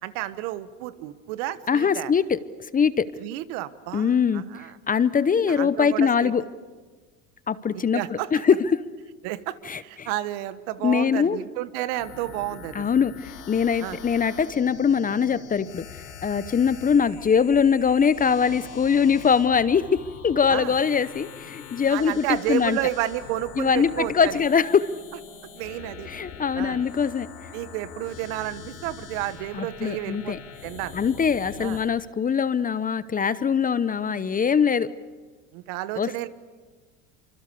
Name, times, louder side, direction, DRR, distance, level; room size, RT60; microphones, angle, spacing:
voice 1, 0.0-2.1 3.2-4.8 5.5-6.3 7.7-8.3 9.2-12.9 13.8-14.0 20.5-20.7 21.9-24.4 25.5-26.1 26.5-26.8 27.5-31.0 31.6-31.8 35.5-36.3, right 15 dB, 65° right, 14 dB, 1.4 m, -31 dB
voice 2, 1.7-2.4 2.7-3.1 3.9-4.4 4.9-6.4 7.5-8.8 9.7-10.1 10.8-11.4 12.7-15.9 16.2-22.8 23.6-24.9 26.1-27.3 29.5-30.4 30.9-34.9 36.0-36.3, left 6 dB, 20° left, 16 dB, 0.8 m, -22 dB
sound 1, 11.9-31.9, left 7 dB, 80° left, 4.6 m, -43 dB
25.5 x 25.0 x 7.0 m, 1.4 s
hypercardioid pair, 90°, 39 cm